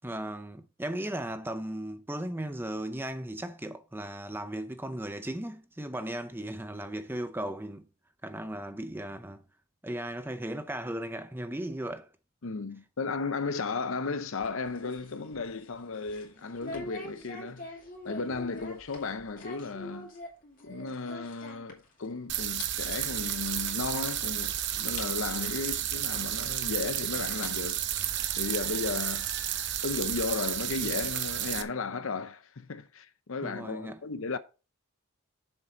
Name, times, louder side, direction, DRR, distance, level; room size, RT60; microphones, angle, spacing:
voice 1, 0.0-7.9 8.2-9.4 9.8-12.1 33.4-34.0, right 1 dB, 10° right, 0.6 m, -36 dB
voice 2, 12.4-17.7 18.0-20.1 20.6-27.8 28.4-29.3 29.8-34.4, left 4 dB, 65° left, 0.7 m, -35 dB
sound 1, 14.2-22.1 22.4-22.7 23.0-23.1 23.8-23.9 24.4-24.5 25.0-25.1 26.4-26.5 27.2-28.6, left 2 dB, 40° left, 2.4 m, -45 dB
sound 2, 22.3-31.6, right 11 dB, 50° right, 0.8 m, -32 dB
7.3 x 6.4 x 4.3 m
head